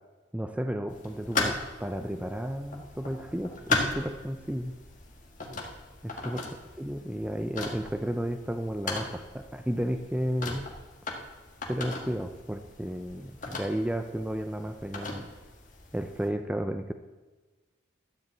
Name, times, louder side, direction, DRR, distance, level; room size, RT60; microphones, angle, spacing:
voice 1, 0.3-4.7 6.0-6.4 6.8-10.6 11.7-15.3 15.9-16.9, equal, 5° right, 7 dB, 0.4 m, -33 dB
sound 1, 0.9-16.3, left 3 dB, 40° left, 1.7 m, -37 dB
12.5 x 5.3 x 8.2 m, 1.2 s
head